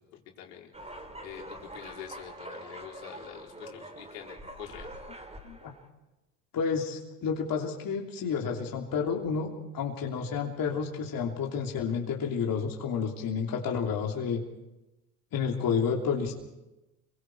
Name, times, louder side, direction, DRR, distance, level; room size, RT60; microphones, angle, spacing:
voice 1, 0.1-0.7 1.2-4.9, left 10 dB, 75° left, 0 dB, 4.9 m, -45 dB
sound 1, 0.7-5.9, right 1 dB, 15° right, 4.1 m, -45 dB
voice 2, 6.5-14.4 15.3-16.3, left 6 dB, 45° left, 0 dB, 3.3 m, -30 dB
28.5 x 23.0 x 4.8 m, 1.0 s
hypercardioid pair, 70°, 49 cm